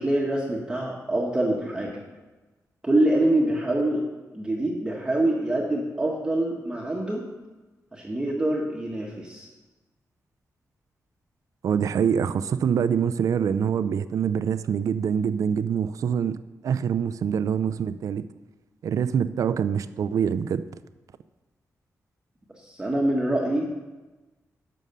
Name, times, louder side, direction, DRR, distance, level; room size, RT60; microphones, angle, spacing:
voice 1, 0.0-2.0 2.8-4.1 4.3-7.3 7.9-9.5 22.6-23.7, right 1 dB, 15° right, -2 dB, 1.1 m, -25 dB
voice 2, 11.6-16.4 16.6-18.2 18.8-20.6, right 7 dB, 65° right, 13 dB, 0.4 m, -25 dB
10.5 x 6.4 x 6.6 m, 1.2 s
wide cardioid pair, 170°, 6 cm